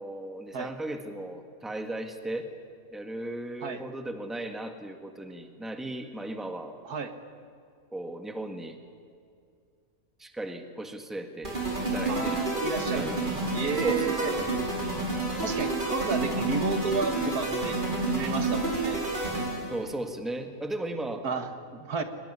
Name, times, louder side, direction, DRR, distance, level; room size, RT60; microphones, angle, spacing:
voice 1, 0.0-2.5 2.9-6.8 7.9-8.8 10.2-12.6 12.9-13.3 13.8-14.5 19.7-21.3, right 1 dB, ahead, 6 dB, 1.6 m, -36 dB
sound 1, 11.4-19.8, right 2 dB, 30° right, 4.9 m, -29 dB
voice 2, 12.1-13.1 13.5-14.3 15.4-17.8 18.1-19.1 21.2-22.0, right 5 dB, 75° right, 8 dB, 2.0 m, -32 dB
24.0 x 19.0 x 9.8 m, 2.3 s
omnidirectional pair, 1.6 m